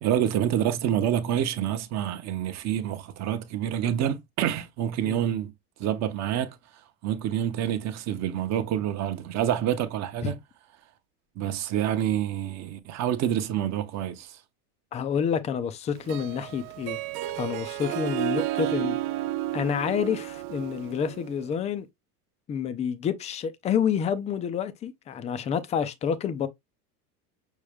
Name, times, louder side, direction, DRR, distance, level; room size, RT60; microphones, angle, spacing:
voice 1, 0.0-5.5 5.8-6.6 7.0-10.4 11.4-14.4, right 10 dB, 35° right, 0.8 m, -27 dB
voice 2, 14.9-17.0 17.4-19.0 19.5-21.9 22.5-26.5, left 7 dB, 15° left, 0.3 m, -28 dB
Harp, 16.0-21.5, right 14 dB, 75° right, 0.7 m, -32 dB
6.3 x 2.1 x 3.4 m
supercardioid pair, 130°, 45 cm